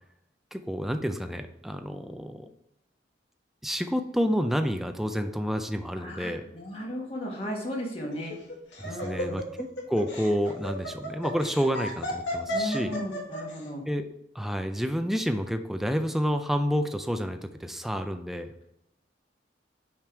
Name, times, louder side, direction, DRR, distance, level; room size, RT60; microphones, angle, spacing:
voice 1, 0.5-2.5 3.6-6.4 8.8-12.9 13.9-14.1 14.3-18.5, equal, ahead, 7 dB, 0.4 m, -29 dB
voice 2, 6.0-8.3 8.8-9.4 12.5-13.8, equal, 35° left, -2 dB, 1.4 m, -35 dB
Laughter, 8.1-13.6, equal, 90° left, 1.9 m, -33 dB
5.9 x 5.1 x 4.5 m, 0.83 s
head